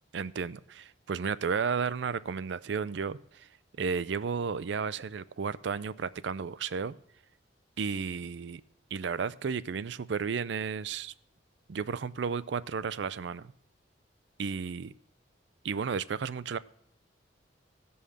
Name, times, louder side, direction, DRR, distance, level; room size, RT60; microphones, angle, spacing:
voice 1, 0.1-3.5 3.8-6.9 7.8-8.6 8.9-11.1 11.7-13.5 14.4-14.9 15.6-16.6, right 6 dB, 65° right, 18 dB, 0.4 m, -33 dB
15.5 x 5.5 x 6.5 m, 0.71 s
head